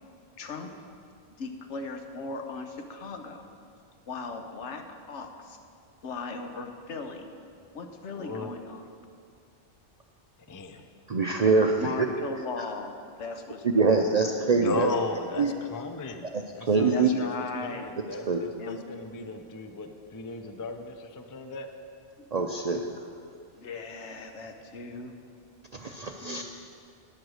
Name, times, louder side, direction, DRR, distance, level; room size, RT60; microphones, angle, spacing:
voice 1, 0.4-0.7 1.4-3.4 4.1-5.6 6.0-7.3 7.7-8.8 11.8-14.1 16.9-17.9 18.6-18.8 22.2-22.3 23.5-25.1 26.2-26.4, left 4 dB, 70° left, 5 dB, 1.2 m, -38 dB
voice 2, 8.1-8.5 10.5-10.9 14.6-15.4 15.7-16.3 16.5-21.7, left 3 dB, 30° left, 7 dB, 0.4 m, -35 dB
voice 3, 11.1-12.1 12.6-12.7 13.6-14.9 15.4-15.5 16.2-17.1 18.1-18.4 22.3-23.1 25.7-26.4, right 4 dB, 50° right, 3 dB, 0.5 m, -25 dB
10.5 x 7.8 x 6.4 m, 2.3 s
omnidirectional pair, 1.2 m